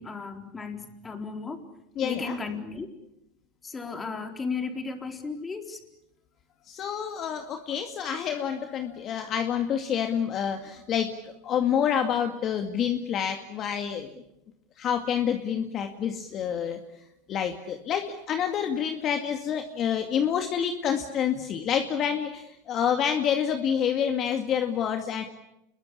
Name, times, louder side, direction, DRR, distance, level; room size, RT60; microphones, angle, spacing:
voice 1, 0.0-1.6 2.0-2.9 3.6-5.8, left 4 dB, 20° left, 5 dB, 4.0 m, -35 dB
voice 2, 2.0-2.4 6.7-14.1 14.8-16.8 17.3-25.2, left 8 dB, 40° left, 5 dB, 2.3 m, -28 dB
28.5 x 22.0 x 8.5 m, 0.86 s
supercardioid pair, 115°, 0 cm